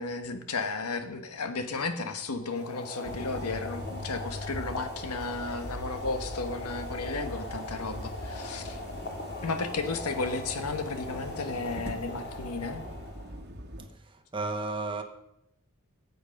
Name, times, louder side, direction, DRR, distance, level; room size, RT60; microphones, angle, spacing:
voice 1, 0.0-8.8 9.4-12.8, left 3 dB, 85° left, 1.2 m, -34 dB
Boiling, 2.4-13.4, left 2 dB, 50° left, 2.2 m, -41 dB
sound 1, 3.0-13.9, equal, 50° right, 1.4 m, -41 dB
voice 2, 14.1-15.0, right 3 dB, 25° right, 1.1 m, -33 dB
15.0 x 8.1 x 5.3 m
head